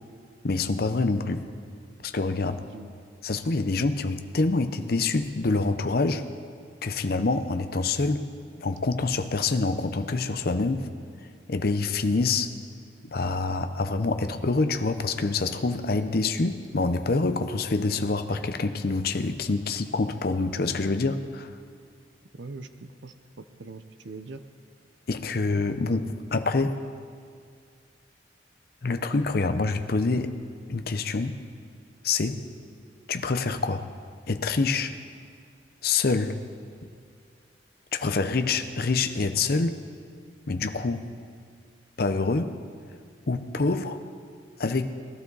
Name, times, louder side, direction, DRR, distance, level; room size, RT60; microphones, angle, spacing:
voice 1, 0.4-1.5 2.0-2.6 3.2-6.2 6.8-8.3 8.6-10.9 11.5-12.5 13.0-21.5 25.1-26.8 28.8-30.4 30.7-31.4 32.0-32.5 33.1-33.9 34.3-34.9 35.8-36.4 37.9-39.8 40.5-41.1 42.0-42.6 43.3-44.0 44.6-44.9, left 3 dB, 55° left, 9 dB, 0.6 m, -26 dB
voice 2, 2.5-2.9 22.3-24.4, right 3 dB, 75° right, 10 dB, 0.7 m, -42 dB
20.0 x 12.5 x 4.0 m, 2.3 s
head